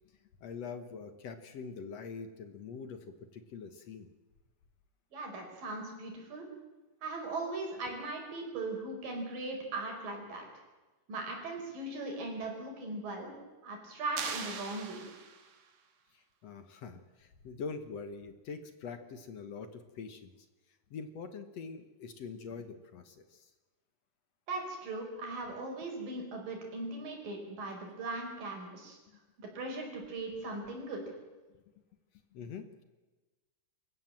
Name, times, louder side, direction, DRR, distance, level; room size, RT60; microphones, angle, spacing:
voice 1, 0.4-4.1 16.1-23.5 29.1-29.2 31.5-31.6 32.3-32.7, left 5 dB, 60° left, 9 dB, 2.1 m, -44 dB
voice 2, 5.1-6.5 7.0-10.4 11.1-13.3 13.6-15.0 24.5-29.0 29.4-31.0, right 2 dB, 85° right, 2 dB, 6.7 m, -39 dB
sound 1, 14.2-15.7, right 6 dB, 60° right, 3.2 m, -40 dB
28.0 x 15.0 x 7.6 m, 1.2 s
omnidirectional pair, 3.8 m